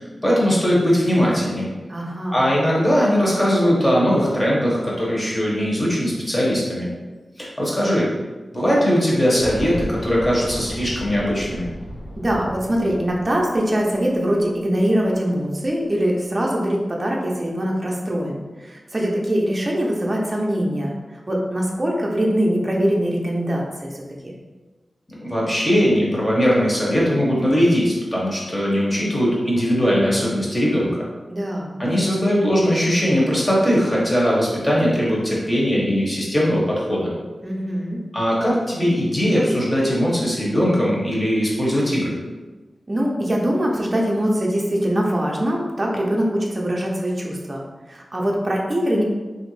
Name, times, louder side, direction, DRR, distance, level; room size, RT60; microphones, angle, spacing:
voice 1, 0.0-1.7 2.3-6.9 7.4-8.1 8.5-11.7 25.1-31.0 31.8-37.1 38.1-42.2, equal, 20° left, -5 dB, 0.9 m, -20 dB
voice 2, 1.9-2.5 12.1-23.9 24.2-24.3 31.3-31.7 37.4-38.0 42.9-49.0, equal, 30° right, -2 dB, 0.5 m, -23 dB
Boom, 9.4-14.1 14.4-14.5 15.6-15.7, equal, 75° left, 0.6 m, -34 dB
3.0 x 2.5 x 3.1 m, 1.3 s
wide cardioid pair, 110°, 0 cm